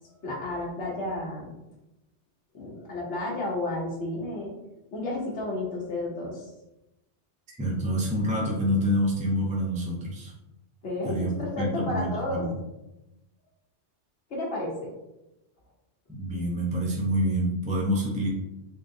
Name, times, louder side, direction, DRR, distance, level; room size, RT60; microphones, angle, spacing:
voice 1, 0.2-1.5 2.5-4.5 4.9-6.5 10.8-12.5 14.3-14.9, left 2 dB, 75° left, -3 dB, 1.1 m, -32 dB
voice 2, 7.5-10.3 11.0-12.6 16.1-18.3, equal, 10° right, -3 dB, 0.4 m, -27 dB
3.7 x 3.5 x 2.6 m, 0.96 s
omnidirectional pair, 1.2 m